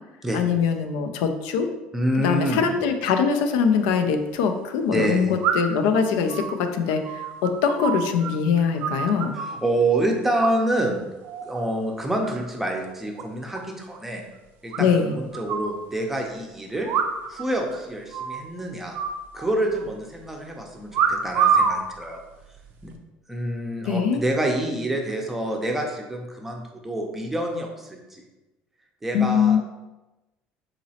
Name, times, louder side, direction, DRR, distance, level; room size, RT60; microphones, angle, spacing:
voice 1, 0.3-1.7 2.2-9.3 14.8-15.1 23.8-24.2 29.1-29.6, left 6 dB, 90° left, 7 dB, 0.4 m, -22 dB
voice 2, 1.9-2.6 4.9-5.3 9.3-11.0 11.4-14.2 14.6-16.9 17.3-18.9 19.3-22.2 22.8-22.9 23.3-28.2 29.0-29.6, right 1 dB, 10° right, 1 dB, 0.5 m, -27 dB
sound 1, 3.6-3.7 5.4-5.9 6.3-8.3 8.6-9.6 10.4-10.9 11.2-11.6 12.0-12.6 12.8-12.9 13.2-13.3 13.5-13.6 13.9-14.0 14.7-15.8 16.8-17.5 17.7-17.8 18.1-18.5 18.9-19.9 20.9-21.8 22.5-22.9, right 7 dB, 65° right, 0.4 m, -26 dB
3.9 x 2.9 x 2.8 m, 1.0 s
cardioid pair, 130°, 3 cm